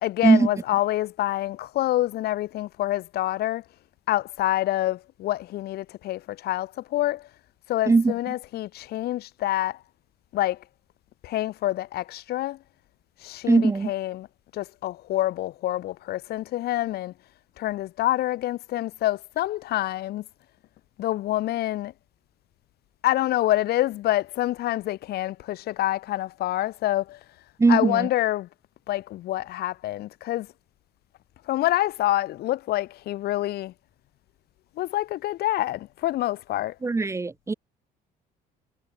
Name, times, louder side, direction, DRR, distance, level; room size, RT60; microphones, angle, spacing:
voice 1, 0.0-3.6 4.1-7.3 7.7-9.8 10.3-10.6 11.2-12.6 13.2-14.3 14.5-17.1 17.6-20.2 21.0-21.9 23.0-27.2 27.7-28.5 28.9-30.5 31.5-33.7 34.8-36.7, left 15 dB, 70° left, 1.1 m, -27 dB
voice 2, 13.5-13.9 27.6-28.1 36.8-37.5, right 3 dB, 15° right, 0.7 m, -20 dB
cardioid pair, 110°, 17 cm